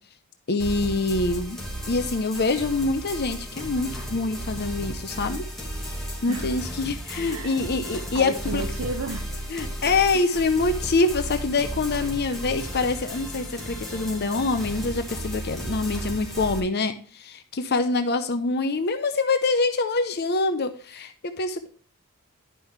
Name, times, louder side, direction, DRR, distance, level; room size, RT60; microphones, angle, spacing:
voice 1, 0.5-1.6 1.9-5.4 6.2-8.6 9.5-21.7, left 3 dB, 50° left, 8 dB, 0.7 m, -25 dB
sound 1, 0.6-16.6, equal, ahead, 2.2 m, -34 dB
voice 2, 7.3-7.7 8.1-9.3 10.1-10.2, right 3 dB, 70° right, 7 dB, 0.8 m, -32 dB
11.0 x 5.4 x 3.2 m, 0.42 s
head